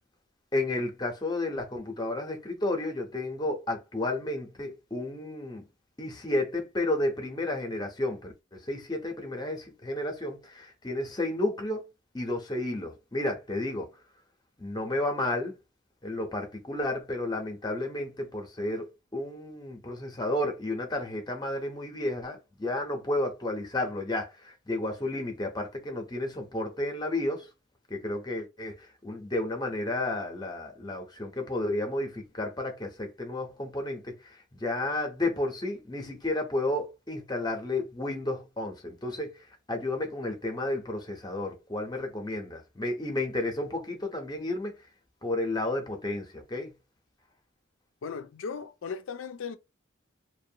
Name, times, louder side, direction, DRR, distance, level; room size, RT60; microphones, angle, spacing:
voice 1, 0.5-5.6 6.0-11.9 12.1-13.9 14.6-15.5 16.0-27.5 27.9-39.3 39.7-44.7 45.2-46.7, left 2 dB, 20° left, 0.6 m, -32 dB
voice 2, 48.0-49.6, left 5 dB, 85° left, 0.4 m, -37 dB
2.5 x 2.2 x 2.7 m
head